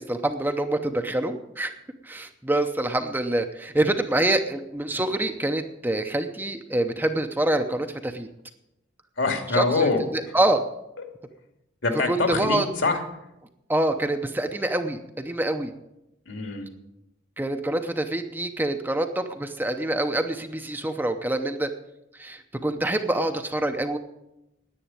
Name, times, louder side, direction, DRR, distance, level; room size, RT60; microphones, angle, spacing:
voice 1, 0.0-1.7 2.0-8.3 9.5-10.6 12.1-12.7 13.7-15.7 17.4-21.7 22.2-24.0, right 1 dB, 10° right, 7 dB, 0.7 m, -26 dB
voice 2, 9.2-10.0 11.8-13.0 16.3-16.6, left 3 dB, 70° left, 5 dB, 2.4 m, -24 dB
10.0 x 9.3 x 9.0 m, 0.89 s
head